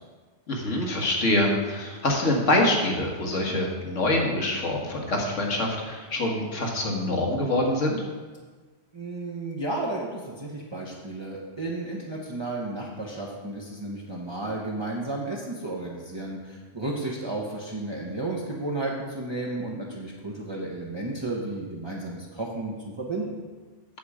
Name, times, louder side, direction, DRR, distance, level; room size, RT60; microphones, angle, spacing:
voice 1, 0.5-8.1, left 1 dB, 80° left, 0 dB, 1.8 m, -25 dB
voice 2, 8.9-23.4, right 2 dB, 25° right, -3 dB, 1.0 m, -33 dB
8.3 x 7.7 x 4.9 m, 1.4 s
omnidirectional pair, 1.2 m